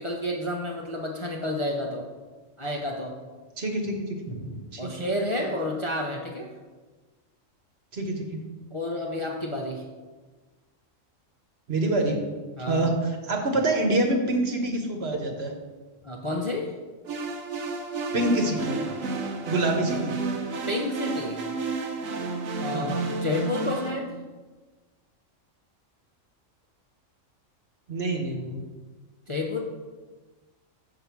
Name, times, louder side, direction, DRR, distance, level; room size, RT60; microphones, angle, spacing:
voice 1, 0.0-2.1 2.6-3.2 4.8-6.5 8.7-9.8 12.6-12.9 16.0-16.7 20.7-21.4 22.6-24.2 29.3-29.6, left 1 dB, 30° left, -1 dB, 0.6 m, -30 dB
voice 2, 3.6-5.1 7.9-8.4 11.7-12.2 12.6-12.9 13.3-15.5 18.1-18.9 19.5-20.1 22.7-22.9 27.9-28.7, right 2 dB, 55° right, 3 dB, 1.3 m, -26 dB
sound 1, 17.1-23.9, right 3 dB, 80° right, 1.3 m, -31 dB
6.9 x 5.5 x 5.9 m, 1.3 s
omnidirectional pair, 1.4 m